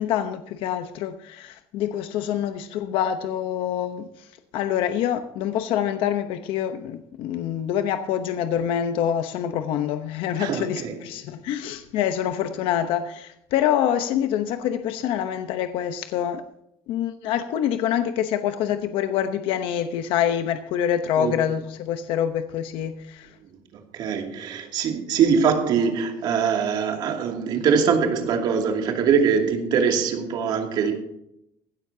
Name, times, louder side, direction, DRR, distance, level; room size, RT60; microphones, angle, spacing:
voice 1, 0.0-4.3 4.5-16.4 16.9-23.3, left 10 dB, 65° left, 8 dB, 0.9 m, -26 dB
voice 2, 10.4-11.0 21.2-21.4 23.7-31.0, right 6 dB, 50° right, 3 dB, 2.5 m, -23 dB
16.0 x 12.5 x 2.8 m, 0.78 s
cardioid pair, 175°, 10 cm